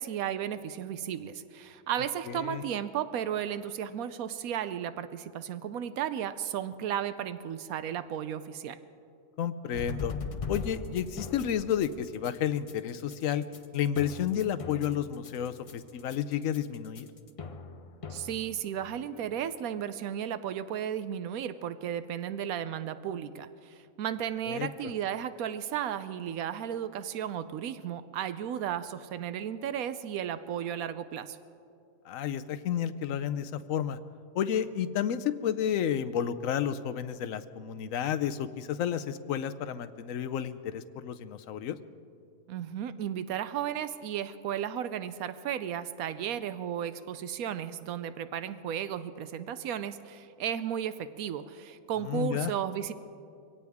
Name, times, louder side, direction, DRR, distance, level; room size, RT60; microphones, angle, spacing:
voice 1, 0.0-8.8 18.1-31.4 42.5-52.9, right 9 dB, 85° right, 12 dB, 1.1 m, -34 dB
voice 2, 2.3-2.6 9.4-10.1 10.5-13.4 13.7-17.1 24.4-24.7 32.1-34.0 34.3-41.8 52.0-52.5, left 9 dB, 70° left, 11 dB, 1.0 m, -31 dB
sound 1, 9.7-18.9, left 5 dB, 50° left, 0.4 m, -40 dB
23.5 x 17.0 x 3.5 m, 2.5 s
omnidirectional pair, 1.5 m